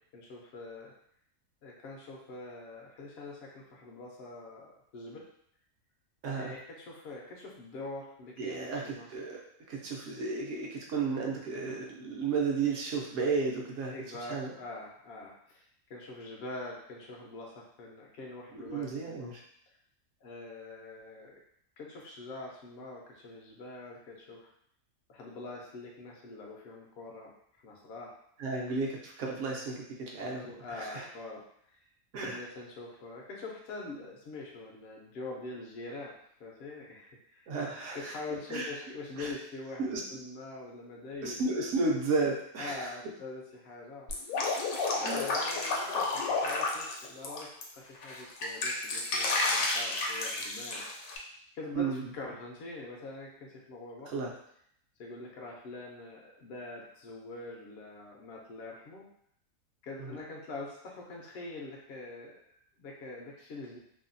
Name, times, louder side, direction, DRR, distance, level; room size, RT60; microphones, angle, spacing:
voice 1, 0.1-0.9 1.6-5.2 6.3-9.1 13.9-15.6 15.9-19.3 20.2-21.4 21.8-24.5 25.1-27.3 27.6-28.1 30.2-31.8 32.2-36.1 36.4-37.5 37.9-41.4 42.6-44.7 45.0-47.5 47.7-50.8 51.5-54.1 55.0-59.1 59.8-63.8, left 2 dB, 65° left, -2 dB, 0.6 m, -44 dB
voice 2, 6.2-6.5 8.4-9.4 9.7-13.9 14.3-14.5 18.5-19.3 28.4-31.0 32.1-32.4 37.5-38.1 38.5-38.7 39.2-39.3 39.8-40.0 41.2-42.9 45.0-45.3 51.8-52.0 54.1-54.3 60.0-60.2, right 4 dB, 70° right, -1 dB, 0.9 m, -33 dB
Drip, 44.1-47.6 48.0-51.2, left 3 dB, 80° left, 1.0 m, -31 dB
2.7 x 2.2 x 2.5 m, 0.68 s
omnidirectional pair, 1.5 m